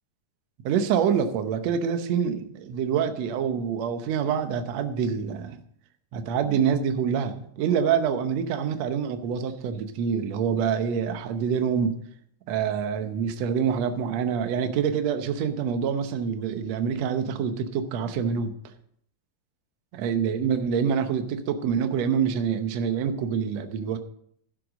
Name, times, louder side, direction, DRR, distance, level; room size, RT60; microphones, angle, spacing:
voice 1, 0.6-5.6 6.1-12.0 12.5-18.5 20.0-24.0, right 7 dB, 65° right, 8 dB, 1.8 m, -26 dB
12.0 x 7.9 x 5.1 m, 0.67 s
omnidirectional pair, 3.8 m